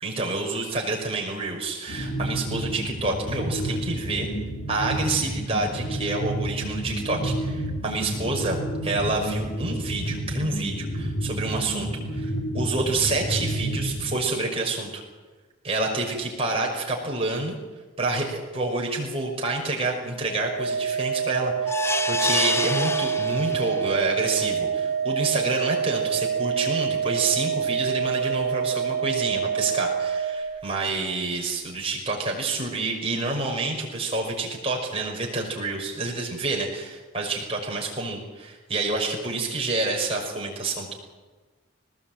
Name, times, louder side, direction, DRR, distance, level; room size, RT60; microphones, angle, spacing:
voice 1, 0.0-4.3 4.7-15.0 15.6-17.6 18.0-40.9, right 3 dB, 30° right, -1 dB, 6.0 m, -28 dB
sound 1, 1.9-14.1, equal, 65° left, 2.7 m, -30 dB
Organ, 20.3-30.9, right 7 dB, 30° left, 5.7 m, -27 dB
sound 2, 21.7-23.9 24.4-24.5 24.8-24.9, left 3 dB, 15° left, 0.6 m, -27 dB
20.5 x 19.0 x 9.1 m, 1.3 s
head